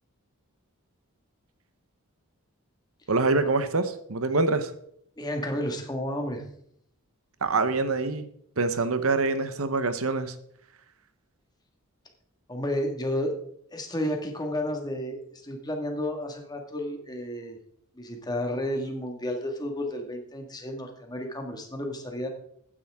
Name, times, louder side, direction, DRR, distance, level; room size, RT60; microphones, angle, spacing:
voice 1, 3.1-4.7 7.4-8.3 8.6-10.3, right 3 dB, 70° right, 11 dB, 1.0 m, -25 dB
voice 2, 5.2-6.4 12.5-13.3 13.7-17.6 18.0-22.3, left 1 dB, 20° left, 3 dB, 1.8 m, -32 dB
14.5 x 9.9 x 3.6 m, 0.69 s
head